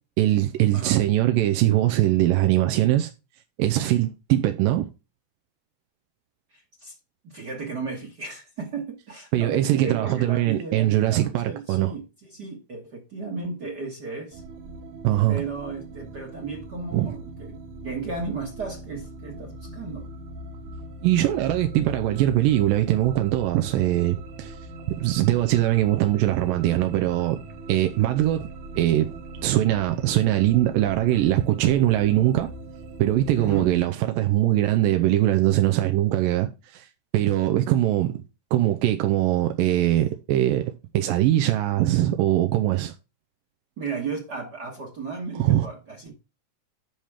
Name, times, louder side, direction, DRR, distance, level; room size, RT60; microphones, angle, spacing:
voice 1, 0.2-3.1 3.6-4.9 9.3-11.9 15.0-15.4 16.9-17.1 21.0-24.6 24.9-27.4 27.7-28.5 28.8-29.1 29.4-32.5 33.0-36.9 37.1-38.2 38.5-42.9 45.4-45.7, right 14 dB, 85° right, 2.3 m, -22 dB
voice 2, 6.5-6.9 7.2-14.4 15.3-20.1 33.3-33.7 43.8-46.1, right 4 dB, 45° right, 1.3 m, -34 dB
sound 1, 14.3-33.9, right 2 dB, 65° right, 2.4 m, -40 dB
10.5 x 5.8 x 3.6 m
omnidirectional pair, 4.1 m